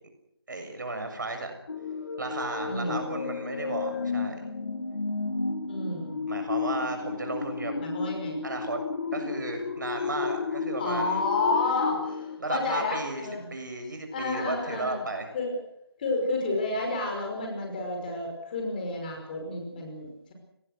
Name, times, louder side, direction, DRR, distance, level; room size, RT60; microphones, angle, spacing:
voice 1, 0.5-1.5 2.2-4.5 6.3-7.8 8.4-8.8 9.1-11.2 12.4-15.3, right 2 dB, 50° right, 6 dB, 7.0 m, -34 dB
sound 1, 1.7-12.4, left 4 dB, 45° left, 2.7 m, -32 dB
voice 2, 2.6-3.1 5.6-6.2 7.8-8.4 10.8-13.5 14.1-15.0 15.3-15.6 16.0-20.3, left 3 dB, 20° left, 2 dB, 5.4 m, -30 dB
29.5 x 19.5 x 6.5 m, 0.77 s
figure-of-eight pair, 165°, 13 cm